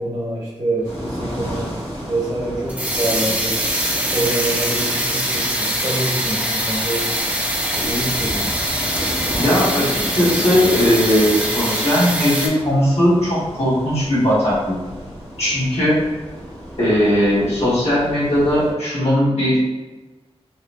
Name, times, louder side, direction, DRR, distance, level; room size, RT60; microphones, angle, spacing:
voice 1, 0.0-1.7 2.0-3.6 4.1-7.1 7.7-8.5, right 1 dB, 35° right, -6 dB, 0.9 m, -26 dB
sound 1, 0.8-18.7, equal, 70° left, 1.1 m, -33 dB
sound 2, 0.8-12.5, right 1 dB, 15° right, 0.4 m, -23 dB
voice 2, 9.3-14.7 15.4-16.0 16.8-19.6, equal, 90° left, -11 dB, 1.3 m, -18 dB
3.0 x 2.0 x 2.5 m, 1.2 s
wide cardioid pair, 95°, 11 cm